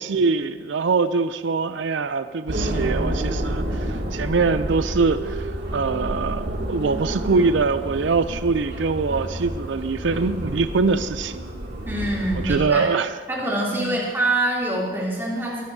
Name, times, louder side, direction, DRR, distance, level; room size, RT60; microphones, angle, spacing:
voice 1, 0.0-11.4 12.4-13.1 13.8-14.0, right 4 dB, 90° right, 11 dB, 0.5 m, -23 dB
sound 1, 2.5-12.6, right 1 dB, 70° right, 2.4 m, -29 dB
voice 2, 11.8-12.9 13.3-15.6, right 1 dB, 15° right, -5 dB, 3.1 m, -25 dB
22.0 x 12.5 x 2.8 m, 1.4 s
head